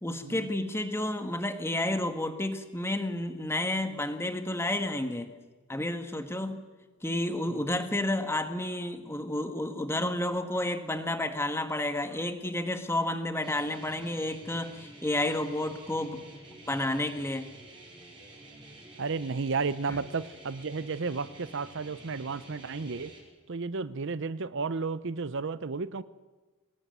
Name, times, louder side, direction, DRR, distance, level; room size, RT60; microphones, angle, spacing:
voice 1, 0.0-5.3 5.7-6.6 7.0-16.3 16.7-17.5 19.9-20.0, left 1 dB, 10° left, 7 dB, 1.7 m, -31 dB
sound 1, 13.4-23.2, right 1 dB, 25° right, 6.2 m, -50 dB
voice 2, 19.0-23.1 23.5-26.0, right 4 dB, 55° right, 15 dB, 0.7 m, -33 dB
24.0 x 19.5 x 9.3 m, 1.3 s
head